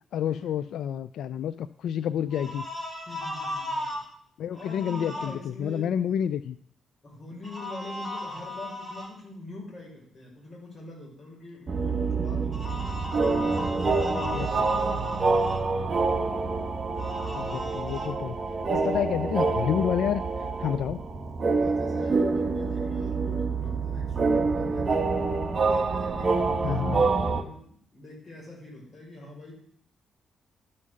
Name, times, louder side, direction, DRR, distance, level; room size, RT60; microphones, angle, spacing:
voice 1, 0.1-2.7 4.4-6.6 14.2-14.7 17.3-18.4 18.7-21.0 26.6-27.0, left 9 dB, 85° left, 14 dB, 0.3 m, -29 dB
sound 1, 2.3-4.0 4.5-5.3 7.4-9.1 12.5-15.6 17.0-18.1, left 1 dB, 10° left, 3.7 m, -36 dB
voice 2, 3.1-3.8 4.5-6.3 7.0-15.9 18.5-19.0 21.5-25.1 25.6-29.5, left 2 dB, 40° left, -2 dB, 5.1 m, -44 dB
sound 2, 11.7-27.4, right 4 dB, 35° right, 1.2 m, -27 dB
12.0 x 5.6 x 6.3 m, 0.62 s
cardioid pair, 130°, 0 cm